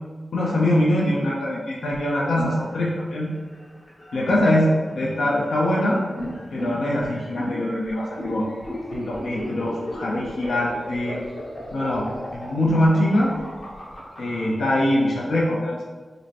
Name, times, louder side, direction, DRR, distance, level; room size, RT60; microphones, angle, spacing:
voice 1, 0.3-3.3 4.1-6.0 6.5-11.2 11.7-12.1 12.3-13.4 14.2-15.8, left 1 dB, 85° left, -4 dB, 0.5 m, -23 dB
sound 1, 1.9-14.4, equal, 45° left, 1.0 m, -35 dB
5.1 x 2.1 x 2.8 m, 1.3 s
wide cardioid pair, 175°, 0 cm